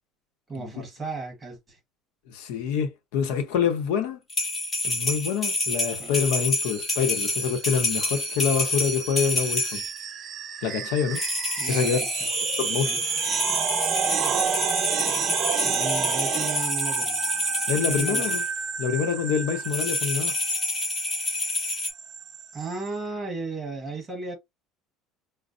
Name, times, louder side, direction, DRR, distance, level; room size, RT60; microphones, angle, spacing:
voice 1, 0.5-1.8 6.0-6.2 11.6-12.1 12.8-13.0 15.6-17.2 17.8-18.4 22.5-24.3, right 3 dB, 15° right, 1.2 m, -35 dB
voice 2, 2.3-4.2 4.8-9.8 10.6-11.2 11.7-12.0 12.6-12.9 17.7-18.4 18.8-20.3, left 7 dB, 80° left, 0.7 m, -26 dB
sound 1, 4.3-10.0 11.1-18.5 19.6-21.9, left 2 dB, 15° left, 0.9 m, -28 dB
sound 2, 6.7-22.9, right 8 dB, 35° right, 0.4 m, -31 dB
5.1 x 2.0 x 2.5 m
cardioid pair, 175°, 0 cm